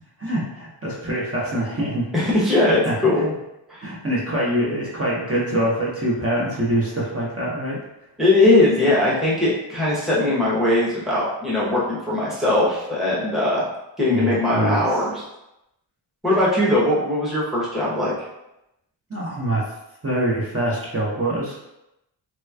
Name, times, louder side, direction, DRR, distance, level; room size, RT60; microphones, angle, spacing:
voice 1, 0.2-2.0 2.6-3.2 3.8-7.8 14.1-14.8 16.3-16.4 19.1-19.6 20.0-21.6, right 1 dB, 30° right, -6 dB, 0.9 m, -24 dB
voice 2, 2.1-3.3 3.7-3.8 8.2-13.6 14.0-15.2 16.2-18.1, left 2 dB, ahead, -7 dB, 0.9 m, -20 dB
3.2 x 3.0 x 2.3 m, 0.88 s
wide cardioid pair, 95°, 47 cm